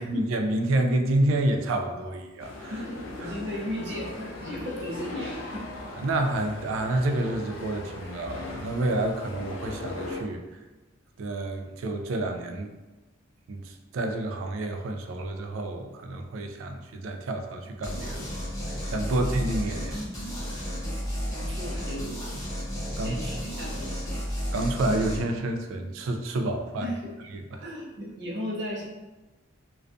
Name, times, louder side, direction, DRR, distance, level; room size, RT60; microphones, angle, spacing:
voice 1, 0.0-2.7 3.2-3.4 6.0-10.4 11.2-12.7 13.5-18.3 18.9-20.0 20.5-20.7 23.0-23.2 24.5-26.9 27.5-27.7, right 1 dB, 80° right, 4 dB, 0.3 m, -29 dB
sound 1, 2.4-10.2, left 2 dB, 75° left, 0.4 m, -39 dB
voice 2, 2.7-5.6 19.1-19.3 20.8-22.2 22.9-24.2 26.8-27.1 27.6-28.8, equal, 55° right, -6 dB, 0.7 m, -36 dB
sound 2, 17.8-25.2, equal, 15° left, 0.5 m, -32 dB
2.3 x 2.3 x 2.5 m, 1.1 s
head